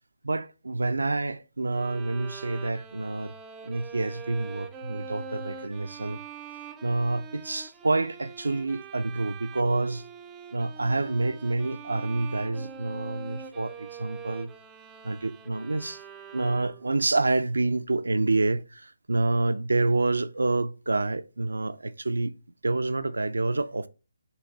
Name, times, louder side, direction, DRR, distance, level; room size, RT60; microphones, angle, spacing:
voice 1, 0.2-3.3 3.7-6.2 6.8-10.0 10.5-14.5 15.0-16.0 16.3-22.3 22.6-23.9, right 2 dB, 85° right, 0.3 m, -28 dB
Bowed string instrument, 1.7-17.0, right 5 dB, 10° right, 0.3 m, -44 dB
3.9 x 2.8 x 4.6 m
figure-of-eight pair, 150°, 0 cm